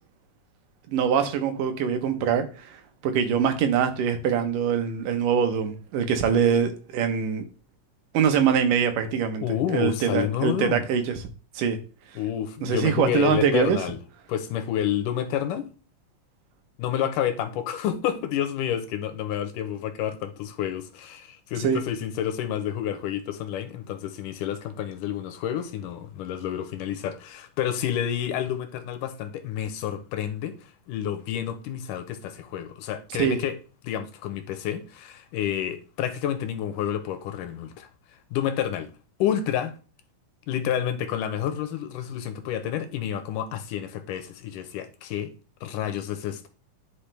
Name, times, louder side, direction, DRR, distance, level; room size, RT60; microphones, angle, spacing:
voice 1, 0.9-2.8 3.0-7.5 8.1-11.1 11.6-11.8 12.6-13.8 21.6-21.8 33.2-33.4, right 7 dB, 85° right, 2.7 m, -23 dB
voice 2, 9.4-10.8 12.2-14.0 14.3-15.7 16.8-30.6 30.9-33.6 33.8-37.9 38.3-38.9 39.2-39.7 40.5-45.3 45.6-46.5, left 10 dB, 90° left, 2.5 m, -29 dB
10.5 x 5.1 x 3.3 m
omnidirectional pair, 3.7 m